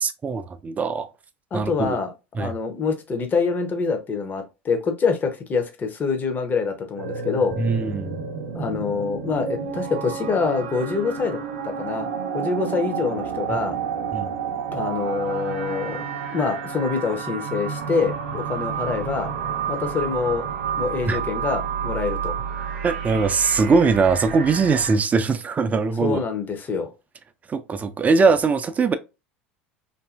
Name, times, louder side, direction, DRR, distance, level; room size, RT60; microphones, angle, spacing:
voice 1, 0.0-1.1 1.5-2.0 2.4-2.5 7.6-8.2 13.5-13.6 14.1-14.3 21.1-21.2 22.8-26.2 27.5-29.0, right 4 dB, 25° right, 0.4 m, -21 dB
voice 2, 1.5-2.1 2.4-7.6 8.5-12.1 12.3-13.8 14.7-16.0 16.3-19.3 19.7-20.5 20.8-22.4 26.0-26.9, left 5 dB, 30° left, 0.7 m, -25 dB
sound 1, 7.0-25.0, right 7 dB, 75° right, 0.6 m, -30 dB
2.6 x 2.6 x 2.3 m
hypercardioid pair, 75°, 6 cm